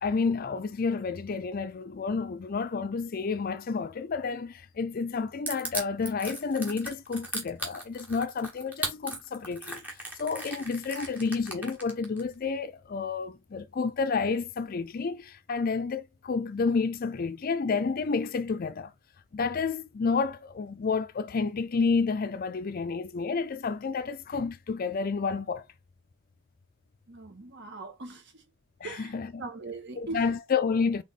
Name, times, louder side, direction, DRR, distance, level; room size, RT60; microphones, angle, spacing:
voice 1, 0.0-9.8 10.2-18.9 19.3-25.7 28.8-29.5 30.0-31.0, left 4 dB, 40° left, 0.4 m, -30 dB
Crushing, 5.5-12.2, right 1 dB, 10° right, 1.2 m, -36 dB
voice 2, 27.1-28.4 28.8-29.1 29.4-30.2, right 3 dB, 55° right, 1.3 m, -40 dB
3.5 x 3.4 x 4.1 m
head